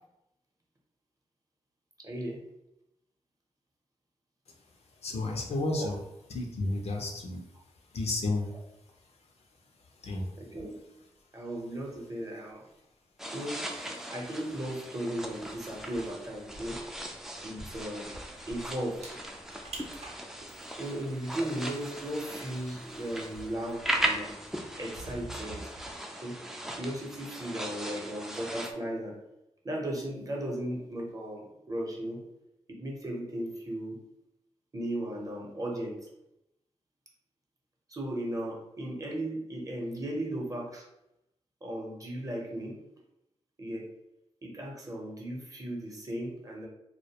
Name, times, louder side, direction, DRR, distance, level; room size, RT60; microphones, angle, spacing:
voice 1, 2.0-2.4 5.7-5.9 10.5-10.7 11.3-12.6 13.3-13.6 14.1-16.8 17.4-18.1 18.5-19.2 20.8-24.3 24.8-25.6 26.2-26.4 26.8-29.2 29.6-32.2 32.7-34.0 34.7-36.1 37.9-40.9 41.6-42.8 43.6-43.9 44.4-46.7, right 1 dB, 30° right, -2 dB, 0.7 m, -36 dB
voice 2, 4.5-6.0 6.3-9.3 9.7-10.6 14.0-14.1, left 2 dB, 65° left, 2 dB, 0.5 m, -34 dB
sound 1, 13.2-28.7, right 1 dB, 5° right, 0.3 m, -38 dB
sound 2, 15.1-26.0, right 2 dB, 70° right, 0.6 m, -50 dB
2.2 x 2.1 x 2.8 m, 0.86 s
cardioid pair, 75°, 12 cm